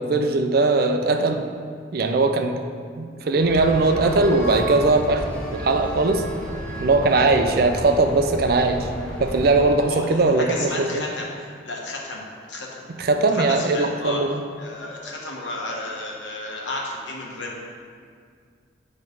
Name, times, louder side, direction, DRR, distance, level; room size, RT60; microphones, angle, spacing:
voice 1, 0.0-1.4 1.9-2.6 3.0-6.2 6.8-8.9 9.2-11.0 13.0-14.4, right 3 dB, 55° right, 6 dB, 0.5 m, -20 dB
sound 1, 3.4-9.7, equal, 5° left, 0.9 m, -32 dB
voice 2, 9.9-10.2 10.5-11.3 11.6-12.8 13.3-14.2 14.6-17.7, left 2 dB, 85° left, -2 dB, 1.1 m, -32 dB
7.6 x 3.2 x 5.2 m, 2.1 s
head